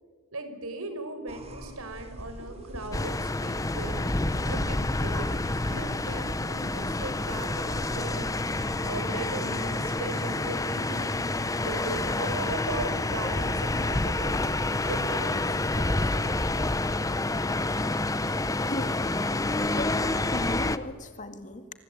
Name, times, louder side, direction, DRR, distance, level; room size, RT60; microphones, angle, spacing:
voice 1, 0.3-4.0 4.3-11.2 11.7-14.4 14.8-16.3, right 2 dB, 80° right, 8 dB, 4.9 m, -38 dB
sound 1, 1.3-10.0, equal, 30° right, 3.9 m, -44 dB
sound 2, 2.9-20.8, left 2 dB, 15° left, 0.8 m, -28 dB
voice 2, 18.7-19.1 19.8-20.0 20.3-21.7, left 1 dB, 35° left, 9 dB, 2.1 m, -35 dB
28.5 x 24.5 x 8.5 m, 1.5 s
head